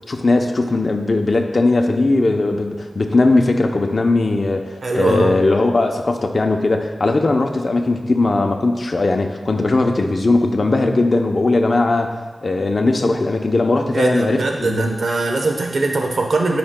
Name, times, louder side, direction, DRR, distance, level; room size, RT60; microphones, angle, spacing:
voice 1, 0.1-14.9, left 2 dB, 60° left, 3 dB, 0.7 m, -18 dB
voice 2, 4.8-5.4 13.9-16.6, right 3 dB, 80° right, 2 dB, 0.9 m, -21 dB
12.5 x 5.1 x 2.2 m, 1.3 s
cardioid pair, 45°, 0 cm